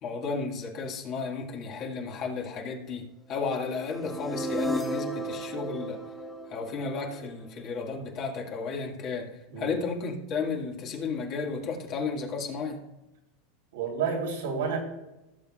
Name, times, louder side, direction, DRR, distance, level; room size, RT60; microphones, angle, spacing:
voice 1, 0.0-6.0 6.5-12.8, left 4 dB, 40° left, 2.0 m, -33 dB
sound 1, 3.6-7.7, equal, 10° left, 0.9 m, -34 dB
voice 2, 13.7-14.8, right 6 dB, 85° right, 3.5 m, -30 dB
16.5 x 7.2 x 2.4 m
supercardioid pair, 135°, 0 cm